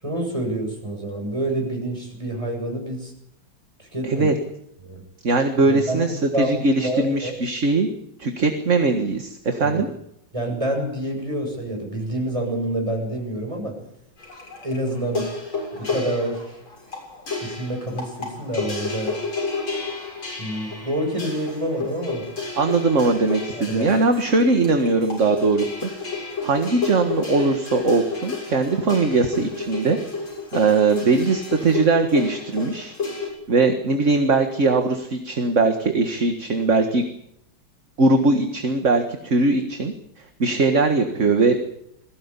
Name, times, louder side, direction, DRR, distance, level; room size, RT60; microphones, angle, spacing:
voice 1, 0.0-3.1 3.8-4.3 4.8-5.0 5.6-6.1 6.3-7.3 9.7-9.8 10.3-13.8 14.6-15.3 15.7-16.5 17.4-19.2 20.4-22.3 23.5-23.9, right 1 dB, 15° right, 1 dB, 7.8 m, -27 dB
voice 2, 4.0-4.3 5.2-7.9 8.2-9.9 22.6-25.9 26.4-30.0 30.5-32.9 33.5-37.0 38.0-39.9 40.4-41.6, right 3 dB, 40° right, 6 dB, 1.9 m, -20 dB
sound 1, 14.2-33.3, left 4 dB, 85° left, 8.0 m, -31 dB
22.0 x 17.0 x 9.8 m, 0.78 s
omnidirectional pair, 2.1 m